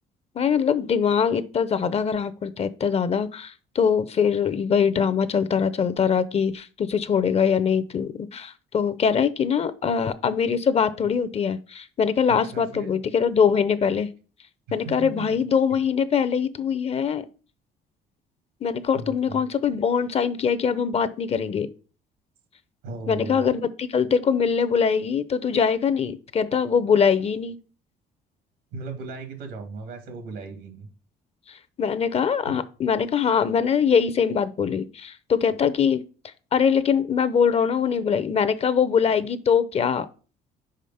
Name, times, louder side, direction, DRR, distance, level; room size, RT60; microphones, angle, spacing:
voice 1, 0.3-14.1 14.7-17.3 18.6-21.7 23.1-27.6 31.5-36.0 36.5-40.1, left 7 dB, 35° left, 15 dB, 0.6 m, -23 dB
voice 2, 12.5-12.9 14.7-15.1 18.9-19.4 22.8-23.5 28.7-30.9 32.5-32.6, right 3 dB, 85° right, 6 dB, 2.0 m, -37 dB
5.0 x 5.0 x 5.5 m, 0.36 s
cardioid pair, 110°, 17 cm